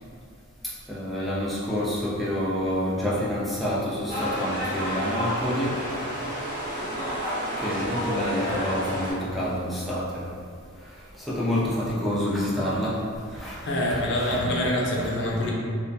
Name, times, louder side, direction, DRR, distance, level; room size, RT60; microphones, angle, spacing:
voice 1, 0.6-5.8 7.6-10.3 10.9-13.0 13.3-14.7 15.0-15.1, equal, ahead, -9 dB, 0.4 m, -28 dB
sound 1, 4.1-9.1, equal, 40° right, 1.0 m, -30 dB
voice 2, 13.7-15.5, left 1 dB, 60° left, -3 dB, 0.4 m, -25 dB
2.2 x 2.2 x 2.6 m, 2.2 s
head